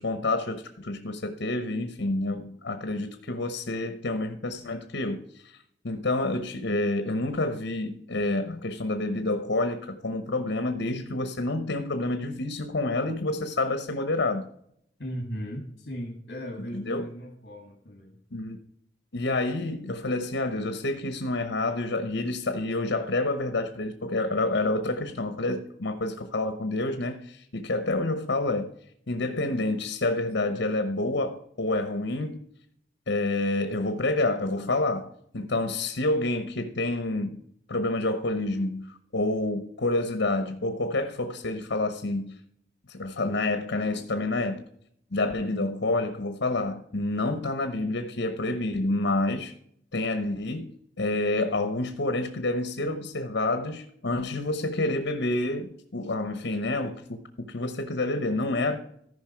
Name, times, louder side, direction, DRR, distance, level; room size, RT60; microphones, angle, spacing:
voice 1, 0.0-5.6 5.8-14.5 16.7-17.1 18.3-18.6 19.1-28.7 29.1-32.4 33.1-37.4 37.7-42.4 42.9-44.6 45.1-49.5 49.9-50.7 51.0-58.8, left 2 dB, 80° left, 1.0 m, -28 dB
voice 2, 15.0-18.2, equal, 60° left, 2.2 m, -37 dB
14.5 x 5.3 x 4.6 m
head